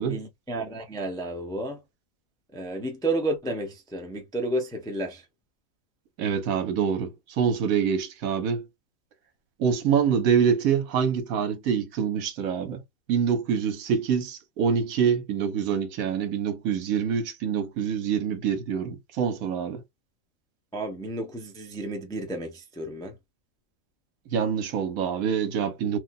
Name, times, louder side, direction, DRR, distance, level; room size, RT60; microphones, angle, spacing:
voice 1, 0.1-1.8 2.5-5.2 20.7-23.1, right 1 dB, 5° left, 0.3 m, -31 dB
voice 2, 6.2-8.7 9.6-12.8 13.1-19.8 24.3-26.0, right 7 dB, 75° right, 1.2 m, -25 dB
3.2 x 2.3 x 2.6 m
omnidirectional pair, 1.5 m